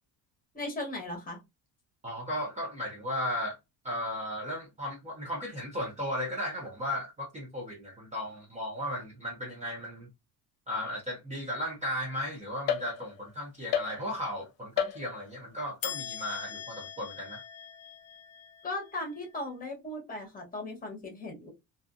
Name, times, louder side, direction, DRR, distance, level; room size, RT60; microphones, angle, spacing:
voice 1, 0.5-1.4 18.6-21.5, left 2 dB, 20° left, 1.0 m, -37 dB
voice 2, 2.0-3.6 3.8-10.1 10.7-17.4, left 1 dB, 20° right, 0.5 m, -35 dB
sound 1, 12.7-13.3 13.7-14.4 14.8-15.4 15.8-19.3, left 9 dB, 60° left, 0.5 m, -36 dB
2.5 x 2.4 x 2.4 m
cardioid pair, 160°, 39 cm